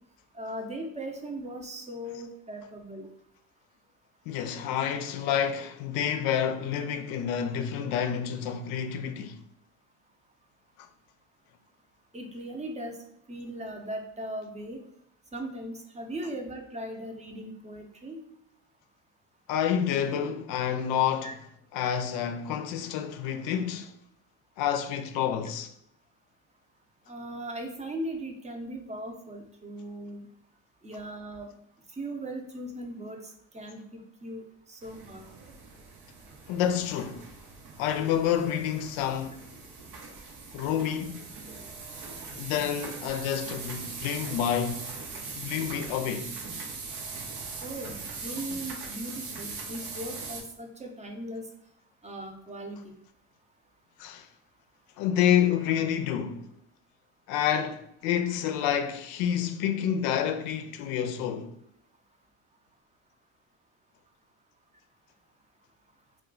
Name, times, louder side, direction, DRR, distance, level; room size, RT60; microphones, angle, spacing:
voice 1, 0.3-3.1 12.1-13.0 13.3-14.8 15.3-18.2 21.2-21.3 27.1-30.2 30.8-31.5 31.9-35.3 47.6-51.5 52.0-52.9, right 1 dB, 20° right, 0.6 m, -38 dB
voice 2, 4.3-9.4 10.8-10.9 19.5-21.3 21.7-23.9 24.6-25.7 36.5-37.2 37.8-39.4 40.5-41.3 42.4-44.8 45.3-46.3 54.0-54.3 55.0-56.5 57.3-61.5, left 9 dB, 75° left, 0.5 m, -28 dB
sound 1, 34.8-50.4, right 4 dB, 65° right, 0.8 m, -41 dB
2.4 x 2.2 x 3.7 m
hypercardioid pair, 70°, 37 cm